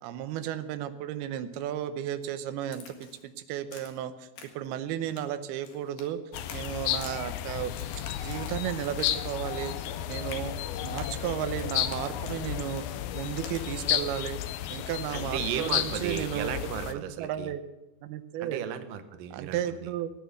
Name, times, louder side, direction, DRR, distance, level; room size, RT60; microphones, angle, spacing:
voice 1, 0.0-4.3 4.6-6.2 6.5-7.7 8.2-9.8 10.1-10.6 10.8-12.8 13.1-14.4 14.7-16.5 16.9-17.6 18.0-18.6 19.3-20.1, right 11 dB, 90° right, 10 dB, 2.8 m, -34 dB
Crack, 2.7-3.3 3.7-4.0 4.4-4.7 5.0-6.1 6.3-7.2 7.7-9.2 9.4-10.0 10.3-10.5 11.0-11.2 11.6-12.0 12.3-12.4 12.8-12.9 13.4-13.6, left 5 dB, 60° left, 3.2 m, -47 dB
sound 1, 6.3-17.0, left 12 dB, 85° left, 2.6 m, -33 dB
voice 2, 15.1-17.5 18.4-19.9, right 10 dB, 70° right, 8 dB, 2.5 m, -35 dB
16.5 x 10.0 x 7.1 m, 0.99 s
omnidirectional pair, 4.4 m